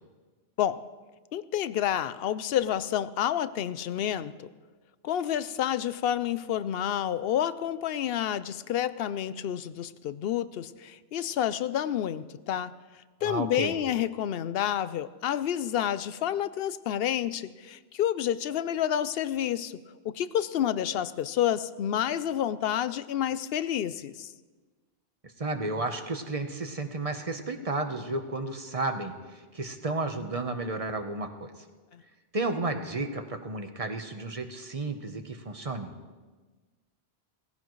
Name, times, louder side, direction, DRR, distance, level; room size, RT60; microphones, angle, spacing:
voice 1, 1.3-4.5 5.0-12.7 13.2-24.3 31.9-32.0, left 10 dB, 70° left, 15 dB, 0.7 m, -29 dB
voice 2, 13.2-13.7 25.4-31.5 32.3-35.9, right 2 dB, 35° right, 6 dB, 1.0 m, -32 dB
19.0 x 15.0 x 3.1 m, 1.3 s
omnidirectional pair, 1.1 m